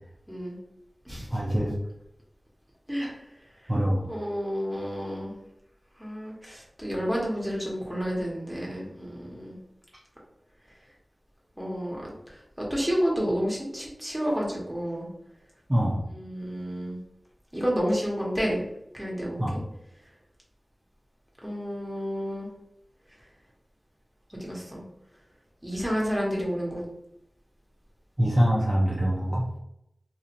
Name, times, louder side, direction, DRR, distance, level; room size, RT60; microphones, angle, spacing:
voice 1, 0.3-0.6 1.0-1.3 2.9-3.2 4.1-5.4 6.0-9.6 11.6-12.1 12.6-15.1 16.1-17.0 17.5-18.6 18.9-19.6 21.4-22.5 24.4-24.8 25.6-26.8, equal, 10° right, -3 dB, 1.2 m, -30 dB
voice 2, 1.3-1.7 3.0-3.1 3.7-4.1 15.7-16.0 19.4-19.6 28.2-29.4, equal, 30° right, -5 dB, 0.6 m, -24 dB
2.8 x 2.6 x 2.5 m, 0.79 s
wide cardioid pair, 40°, 0 cm